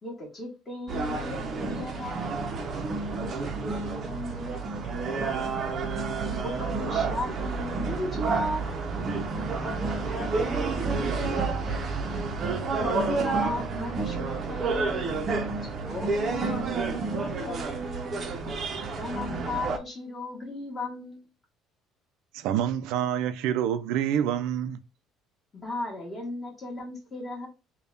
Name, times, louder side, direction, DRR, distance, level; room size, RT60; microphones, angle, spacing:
voice 1, 0.0-2.4 6.4-8.6 12.7-15.2 15.6-15.7 19.0-21.2 25.5-27.5, left 2 dB, 20° left, 1.5 m, -35 dB
sound 1, 0.9-19.8, right 4 dB, 35° right, 0.6 m, -30 dB
voice 2, 3.2-5.4 9.5-11.8 15.7-18.5, left 2 dB, ahead, 1.2 m, -40 dB
voice 3, 22.3-24.8, right 10 dB, 80° right, 0.4 m, -27 dB
3.5 x 2.2 x 3.9 m
cardioid pair, 135°, 0 cm